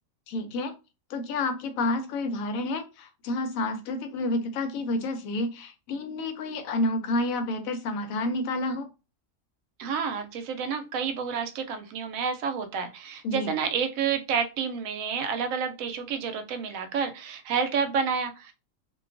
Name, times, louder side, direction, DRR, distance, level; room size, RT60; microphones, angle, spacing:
voice 1, 0.3-0.7 1.1-8.9 13.2-13.5, left 2 dB, 90° left, 7 dB, 1.0 m, -29 dB
voice 2, 9.8-18.5, right 6 dB, 85° right, 7 dB, 1.0 m, -29 dB
2.4 x 2.3 x 2.4 m, 0.29 s
omnidirectional pair, 1.4 m